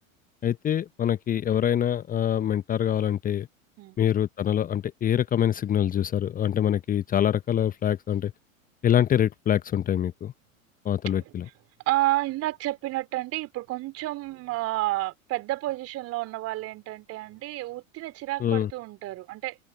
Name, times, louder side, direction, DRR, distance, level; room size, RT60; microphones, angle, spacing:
voice 1, 0.4-3.5 4.0-8.3 8.8-10.3 10.8-11.4 18.4-18.7, left 10 dB, 20° left, 1.2 m, -25 dB
voice 2, 11.9-19.6, right 17 dB, 35° right, 3.1 m, -30 dB
open air
figure-of-eight pair, 90°, 42 cm